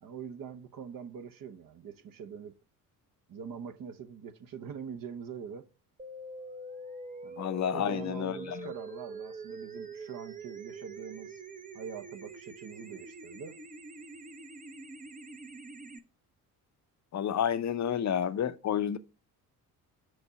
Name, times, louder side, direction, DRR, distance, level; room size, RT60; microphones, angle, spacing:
voice 1, 0.0-2.6 3.3-5.7 7.2-7.4 7.7-11.4 11.7-13.6, right 7 dB, 45° right, 0.9 m, -43 dB
sound 1, 6.0-16.0, right 3 dB, 20° right, 0.6 m, -44 dB
voice 2, 7.4-8.7 17.1-19.0, left 9 dB, 40° left, 0.7 m, -30 dB
6.5 x 4.5 x 6.1 m
hypercardioid pair, 50°, 46 cm